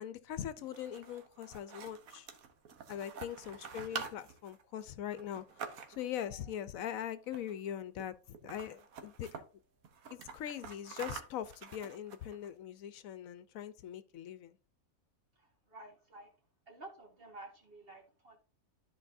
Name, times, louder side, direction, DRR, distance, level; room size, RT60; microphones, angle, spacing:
voice 1, 0.0-2.3 2.9-5.4 5.9-8.2 8.4-9.4 10.1-14.6, left 10 dB, 75° left, 1.0 m, -41 dB
sound 1, 0.6-6.2 7.2-7.7 8.0-8.1 8.3-9.4 9.8-12.5, right 6 dB, 80° right, 1.4 m, -47 dB
voice 2, 6.1-6.5 15.4-16.4 16.7-18.4, right 2 dB, 40° right, 1.8 m, -52 dB
13.0 x 4.7 x 2.6 m
omnidirectional pair, 1.5 m